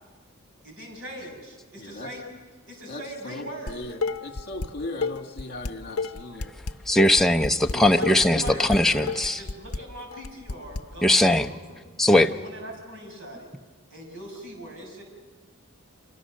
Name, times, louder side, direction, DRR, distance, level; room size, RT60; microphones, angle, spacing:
voice 1, 0.6-2.3 2.7-3.8 7.9-11.8 12.2-13.5 13.9-15.0, right 1 dB, 65° right, 1 dB, 6.4 m, -40 dB
voice 2, 1.8-2.1 2.9-6.5 7.6-8.7, left 2 dB, 50° left, 5 dB, 2.2 m, -38 dB
Dishes pots and pans, 3.7-4.7 5.0-10.8, left 4 dB, 70° left, 0.7 m, -31 dB
voice 3, 6.9-9.4 11.0-11.5 12.0-12.3, left 1 dB, ahead, 4 dB, 0.7 m, -20 dB
29.0 x 25.0 x 6.5 m, 1.4 s
head